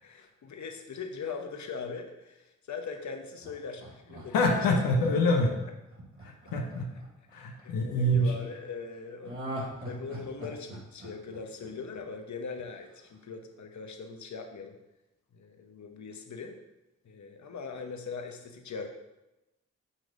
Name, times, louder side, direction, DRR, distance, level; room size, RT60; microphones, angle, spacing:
voice 1, 0.0-4.8 7.6-9.4 9.9-14.8 15.3-16.6 17.0-18.9, left 5 dB, 55° left, 5 dB, 1.0 m, -41 dB
Laughter, 3.4-7.7 9.2-12.2 12.6-12.7, equal, 40° right, 2.3 m, -41 dB
voice 2, 4.3-5.5 6.5-6.9 7.3-8.3, left 1 dB, 85° left, 2 dB, 1.0 m, -25 dB
8.5 x 3.2 x 5.1 m, 0.95 s
supercardioid pair, 50°, 34 cm